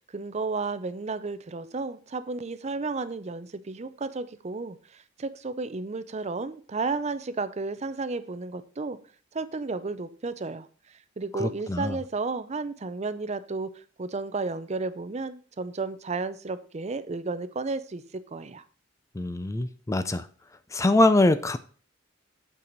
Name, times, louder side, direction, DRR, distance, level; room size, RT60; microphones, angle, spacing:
voice 1, 0.1-9.0 9.3-18.6, right 3 dB, 35° right, 0.5 m, -33 dB
voice 2, 11.4-11.9 19.2-20.2 20.7-21.6, left 2 dB, 15° left, 0.4 m, -23 dB
8.6 x 4.7 x 5.1 m
head